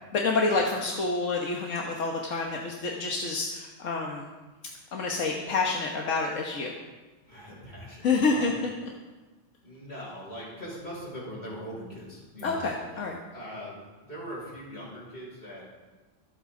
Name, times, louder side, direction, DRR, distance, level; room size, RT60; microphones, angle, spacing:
voice 1, 0.1-4.3 4.9-6.7 8.0-8.5 12.4-13.2, left 3 dB, 90° left, 0 dB, 1.6 m, -28 dB
voice 2, 7.3-8.5 9.6-13.1 13.3-13.8 14.1-15.7, equal, 55° left, -5 dB, 5.7 m, -41 dB
24.0 x 8.5 x 3.8 m, 1.2 s
omnidirectional pair, 1.3 m